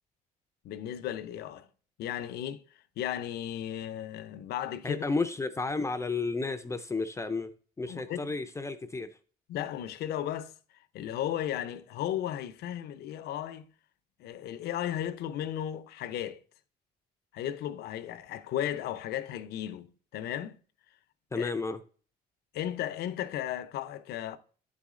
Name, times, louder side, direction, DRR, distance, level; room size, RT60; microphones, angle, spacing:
voice 1, 0.6-1.7 2.0-2.6 3.0-5.0 7.9-8.3 9.5-10.5 10.9-13.7 14.2-16.4 17.3-20.6 21.4-21.5 22.5-24.4, left 11 dB, 70° left, 0.7 m, -35 dB
voice 2, 4.8-7.5 7.8-9.1 21.3-21.8, left 3 dB, 15° left, 0.5 m, -32 dB
10.5 x 4.2 x 3.7 m
cardioid pair, 110°, 17 cm